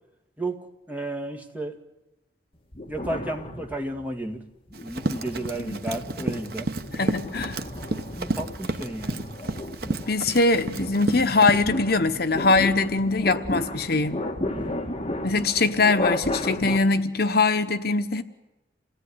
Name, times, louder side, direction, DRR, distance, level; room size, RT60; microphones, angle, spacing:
voice 1, 0.9-1.8 2.9-4.4 4.8-6.7 8.2-9.4 14.5-14.9, right 1 dB, 10° right, 2 dB, 2.2 m, -33 dB
sound 1, 2.7-4.2 4.7-16.8, left 1 dB, 30° left, 1.9 m, -34 dB
Run, 4.7-11.6, right 2 dB, 55° right, 1.1 m, -31 dB
voice 2, 6.9-7.6 10.1-14.2 15.2-18.2, left 3 dB, 55° left, 9 dB, 1.1 m, -22 dB
28.0 x 17.5 x 9.7 m, 1.0 s
head